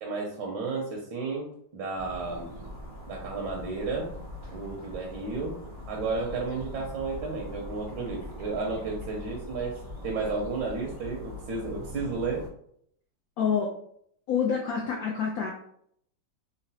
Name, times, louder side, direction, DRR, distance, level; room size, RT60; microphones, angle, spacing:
voice 1, 0.0-2.5 3.1-4.2 4.5-5.6 5.9-9.8 10.0-12.4, right 3 dB, 80° right, -1 dB, 1.3 m, -32 dB
sound 1, 2.0-12.5, equal, 55° right, 0.5 m, -42 dB
voice 2, 13.4-13.7 14.3-15.5, left 6 dB, 85° left, 0 dB, 0.8 m, -27 dB
3.8 x 2.0 x 2.7 m, 0.67 s
omnidirectional pair, 2.1 m